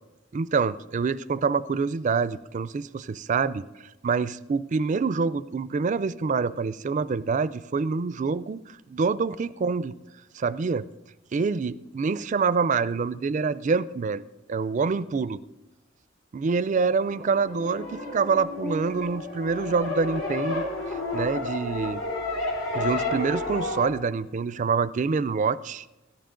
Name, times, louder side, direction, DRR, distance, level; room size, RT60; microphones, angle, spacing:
voice 1, 0.3-3.6 4.0-9.9 10.3-10.9 11.3-14.2 14.5-15.4 16.3-20.6 21.1-22.0 22.7-25.9, right 5 dB, 40° right, 15 dB, 0.4 m, -26 dB
sound 1, 16.8-23.9, left 2 dB, 90° left, 2.9 m, -31 dB
17.0 x 12.5 x 3.8 m, 1.0 s
head